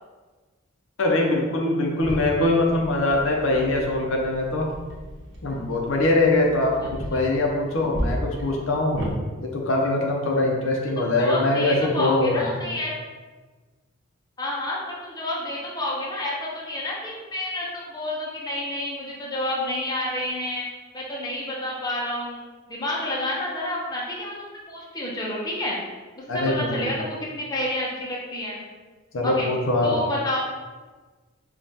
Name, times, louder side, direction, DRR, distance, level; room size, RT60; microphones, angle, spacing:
voice 1, 1.0-4.7 5.4-6.8 7.1-9.0 9.4-12.7 26.3-26.9 29.1-29.9, left 2 dB, 70° left, 0 dB, 0.6 m, -22 dB
sound 1, 2.0-9.1, equal, 60° right, 0.7 m, -35 dB
voice 2, 11.0-12.9 14.4-20.7 20.9-22.4 22.7-24.4 24.7-25.8 26.2-28.6 29.2-29.5 29.8-30.4, left 1 dB, 20° left, -4 dB, 0.6 m, -29 dB
5.2 x 2.4 x 2.7 m, 1.4 s
head